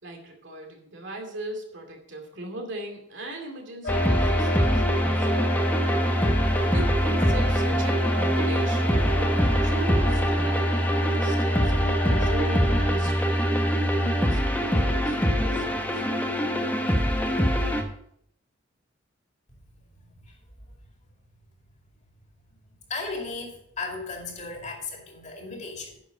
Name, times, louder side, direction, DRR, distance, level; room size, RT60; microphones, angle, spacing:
voice 1, 0.0-5.8 6.6-9.3 9.6-14.4 14.9-16.1, right 1 dB, 70° right, 2.5 m, -39 dB
sound 1, 3.8-12.9, left 1 dB, 75° left, 1.5 m, -35 dB
sound 2, 3.9-17.8, equal, 10° left, 1.0 m, -23 dB
voice 2, 22.9-26.0, left 3 dB, 35° left, 2.4 m, -35 dB
10.0 x 6.8 x 5.2 m
head